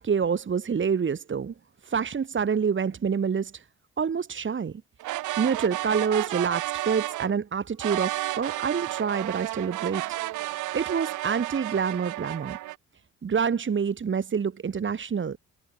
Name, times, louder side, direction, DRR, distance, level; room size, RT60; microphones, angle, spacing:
voice 1, 0.0-1.5 1.8-3.6 4.0-4.8 5.4-10.2 10.7-12.6 13.2-15.4, right 6 dB, 40° right, 2.7 m, -27 dB
sound 1, 5.0-7.3 7.8-12.8, right 17 dB, 85° right, 1.0 m, -32 dB
cardioid pair, 90°, 30 cm